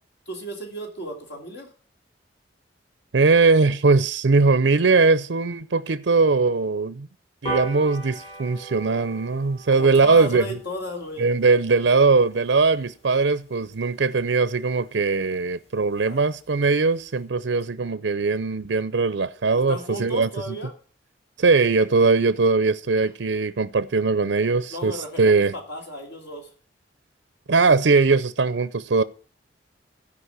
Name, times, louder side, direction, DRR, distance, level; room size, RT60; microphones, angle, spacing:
voice 1, 0.3-1.7 9.7-11.3 16.0-16.2 19.5-20.7 24.7-26.5, equal, 65° left, 3.1 m, -34 dB
voice 2, 3.1-7.1 7.4-10.4 11.2-20.3 21.4-25.5 27.5-29.0, right 4 dB, 75° right, 0.6 m, -20 dB
sound 1, 7.4-14.2 14.6-14.7 15.0-15.1 15.4-15.5 15.8-15.9 16.2-16.5 16.9-17.0, right 2 dB, 35° left, 5.0 m, -38 dB
15.5 x 5.3 x 8.1 m
head